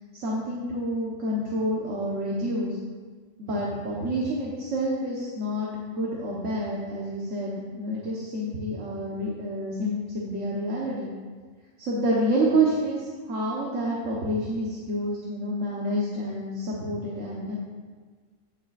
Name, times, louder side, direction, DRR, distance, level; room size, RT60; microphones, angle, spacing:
voice 1, 0.1-2.8 3.4-11.1 11.8-17.6, right 1 dB, 75° right, -5 dB, 1.6 m, -28 dB
16.5 x 7.4 x 2.5 m, 1.5 s
omnidirectional pair, 1.3 m